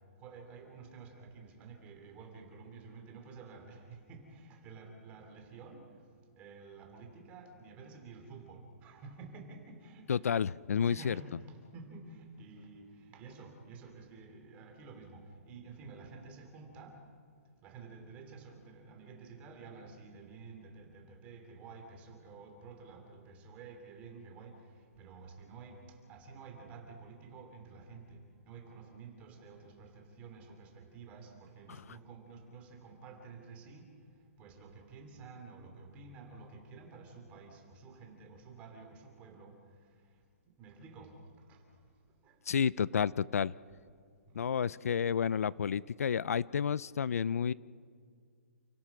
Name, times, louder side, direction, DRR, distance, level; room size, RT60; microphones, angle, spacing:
voice 1, 0.2-5.9 6.4-10.4 10.8-17.0 17.6-24.7 25.0-33.9 34.4-39.6 40.6-41.2 41.5-41.6 42.2-42.4 44.3-44.5, right 4 dB, 15° right, 3 dB, 2.8 m, -51 dB
voice 2, 10.1-11.1 42.5-43.5 44.3-47.5, left 7 dB, 80° left, 21 dB, 0.5 m, -30 dB
29.0 x 17.0 x 6.0 m, 2.1 s
hypercardioid pair, 170°, 8 cm